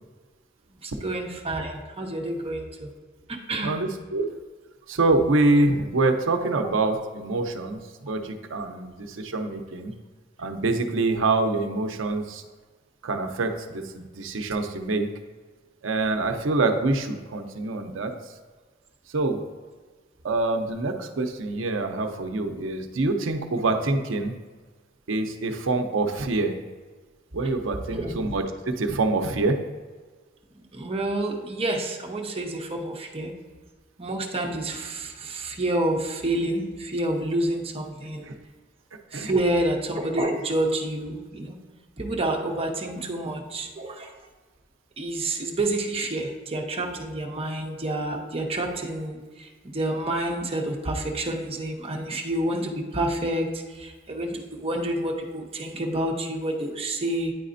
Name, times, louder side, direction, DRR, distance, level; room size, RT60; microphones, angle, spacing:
voice 1, 0.8-2.9 3.3-3.7 27.9-28.1 30.5-33.3 34.0-38.3 39.1-41.6 42.0-44.1 45.0-57.3, right 1 dB, 30° right, 1 dB, 0.8 m, -28 dB
voice 2, 3.6-4.3 4.9-9.9 10.4-12.4 13.0-15.1 15.8-18.2 19.1-19.4 20.2-24.4 25.1-26.6 27.3-29.6 38.2-38.3 39.1-39.3 42.4-42.5, right 2 dB, 80° right, 6 dB, 0.6 m, -25 dB
9.4 x 4.1 x 2.6 m, 1.4 s
head